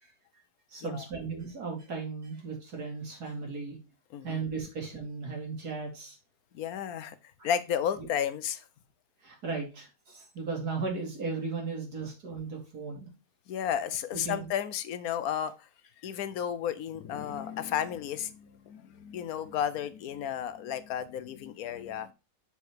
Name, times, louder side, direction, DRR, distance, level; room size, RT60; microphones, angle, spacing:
voice 1, 0.0-0.4 0.7-3.8 4.2-6.2 7.4-7.5 9.2-13.1 14.2-14.5, right 4 dB, 85° right, 1 dB, 2.9 m, -36 dB
voice 2, 4.1-4.4 6.5-7.2 7.4-8.6 13.5-15.5 16.0-22.1, left 9 dB, 75° left, 13 dB, 1.1 m, -33 dB
7.1 x 4.5 x 4.6 m, 0.30 s
omnidirectional pair, 1.6 m